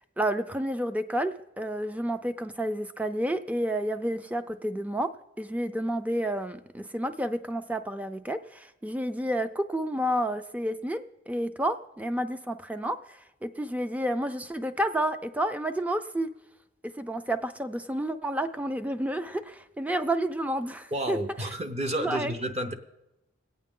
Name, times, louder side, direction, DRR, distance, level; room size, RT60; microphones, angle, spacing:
voice 1, 0.2-5.1 5.4-16.3 16.8-21.5 22.0-22.3, right 1 dB, 5° right, 10 dB, 0.4 m, -30 dB
voice 2, 20.9-22.7, right 1 dB, 35° right, 7 dB, 0.8 m, -31 dB
22.0 x 8.5 x 3.7 m, 0.91 s
head